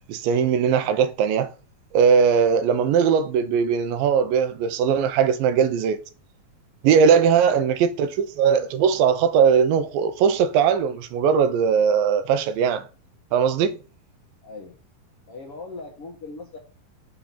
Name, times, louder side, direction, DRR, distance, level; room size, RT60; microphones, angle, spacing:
voice 1, 0.1-1.5 1.9-6.0 6.8-12.8 13.3-13.8, right 7 dB, 80° right, 2.5 m, -20 dB
voice 2, 14.4-14.8 15.3-16.6, left 3 dB, 60° left, 1.7 m, -39 dB
7.2 x 3.8 x 5.7 m
omnidirectional pair, 4.1 m